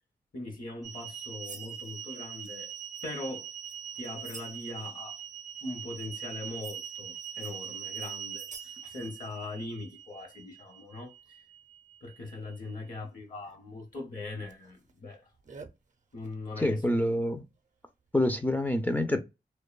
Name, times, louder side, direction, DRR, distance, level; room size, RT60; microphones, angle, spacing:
voice 1, 0.3-2.7 3.0-3.5 3.9-5.2 5.6-11.4 12.0-15.3 16.1-16.8, left 2 dB, 50° left, 0.8 m, -41 dB
sound 1, 0.8-12.8 13.5-13.6 14.5-14.6 15.5-15.7 18.4-18.5, right 8 dB, 45° right, 0.5 m, -42 dB
voice 2, 16.6-17.4 18.1-19.2, left 1 dB, 10° left, 0.4 m, -27 dB
2.5 x 2.1 x 2.3 m
cardioid pair, 55°, 18 cm